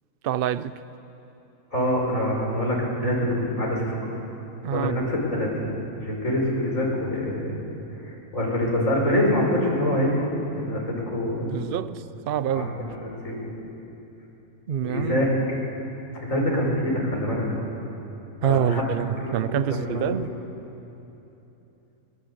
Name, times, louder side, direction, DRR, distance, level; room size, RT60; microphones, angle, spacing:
voice 1, 0.2-0.7 4.6-5.0 11.4-12.7 14.7-15.2 18.4-20.3, right 9 dB, 55° right, 0.7 m, -26 dB
voice 2, 1.7-3.9 4.7-5.7 6.0-7.6 8.3-10.3 10.5-11.6 12.5-13.5 14.8-15.3 16.2-17.7 18.4-18.8 19.2-20.2, left 1 dB, 60° left, 6.1 m, -25 dB
24.0 x 20.0 x 8.6 m
omnidirectional pair, 1.5 m